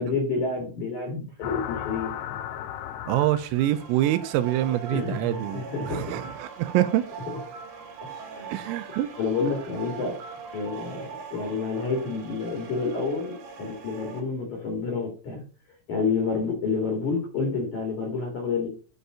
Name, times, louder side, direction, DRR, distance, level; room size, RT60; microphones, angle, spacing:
voice 1, 0.0-2.1 4.9-6.3 8.2-8.6 9.2-10.2 10.5-15.4 15.9-18.7, left 4 dB, 50° left, 2.6 m, -29 dB
sound 1, 1.4-3.8, left 10 dB, 85° left, 2.4 m, -35 dB
voice 2, 3.1-7.0 8.5-9.1, right 13 dB, 85° right, 3.3 m, -25 dB
sound 2, 3.5-14.2, right 6 dB, 55° right, 3.7 m, -41 dB
10.0 x 5.4 x 4.9 m
omnidirectional pair, 6.0 m